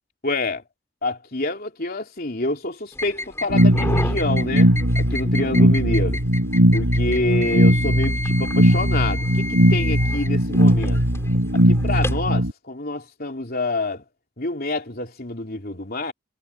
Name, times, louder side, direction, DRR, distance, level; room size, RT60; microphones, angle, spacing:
voice 1, 0.2-0.6 1.0-6.2 6.7-9.5 9.7-11.0 11.5-14.0 14.4-16.1, left 2 dB, 45° left, 3.4 m, -27 dB
sound 1, 2.9-12.3, left 2 dB, 10° left, 4.7 m, -32 dB
sound 2, 3.5-12.5, equal, 80° right, 4.6 m, -19 dB
head